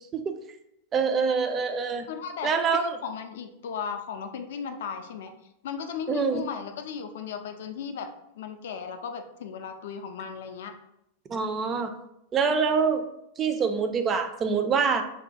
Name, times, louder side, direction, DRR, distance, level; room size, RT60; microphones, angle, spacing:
voice 1, 0.9-2.1 2.4-3.0 6.1-6.4 11.3-11.9 12.3-13.0 13.4-15.0, right 5 dB, 25° right, 7 dB, 0.3 m, -25 dB
voice 2, 2.1-5.3 5.6-8.1 8.4-10.7, left 6 dB, 55° left, 7 dB, 0.3 m, -36 dB
2.6 x 2.2 x 4.0 m, 0.81 s
figure-of-eight pair, 90°, 0 cm